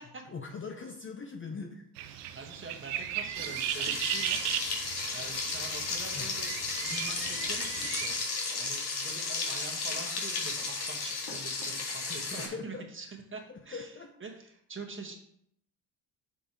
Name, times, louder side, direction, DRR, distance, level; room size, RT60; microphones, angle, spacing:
voice 1, 0.3-1.8 6.1-6.3 12.1-12.9 13.5-14.1, left 5 dB, 25° left, 4 dB, 0.7 m, -41 dB
sound 1, 2.0-8.2, right 11 dB, 85° right, 0.7 m, -36 dB
voice 2, 2.1-4.8 5.1-6.5 6.8-8.2 8.6-15.2, right 4 dB, 25° right, 2 dB, 1.7 m, -45 dB
Frying (food), 3.3-12.5, left 4 dB, 50° left, 2.1 m, -34 dB
7.9 x 5.3 x 3.1 m, 0.70 s
supercardioid pair, 70°, 48 cm